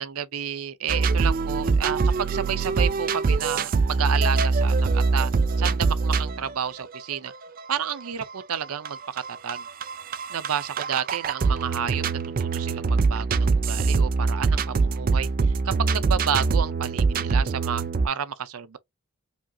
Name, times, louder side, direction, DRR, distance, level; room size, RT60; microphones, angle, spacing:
voice 1, 0.0-5.3 5.6-7.3 7.7-9.7 10.3-12.0 12.4-18.8, right 8 dB, 85° right, 0.6 m, -31 dB
sound 1, 0.9-18.1, right 4 dB, 40° right, 0.3 m, -24 dB
5.0 x 2.7 x 2.3 m
head